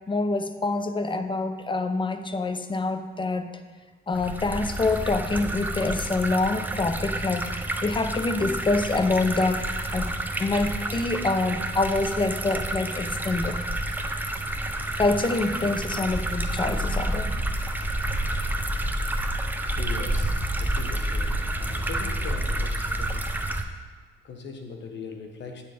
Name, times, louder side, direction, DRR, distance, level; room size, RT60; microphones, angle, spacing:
voice 1, 0.1-3.5 4.1-10.1 10.4-13.6 15.0-17.4, left 3 dB, 25° left, 9 dB, 0.7 m, -26 dB
sound 1, 4.1-23.6, right 1 dB, 10° right, 0.7 m, -29 dB
voice 2, 19.8-23.3 24.2-25.6, left 4 dB, 65° left, 4 dB, 1.4 m, -40 dB
8.9 x 7.0 x 5.0 m, 1.4 s
cardioid pair, 90°, 20 cm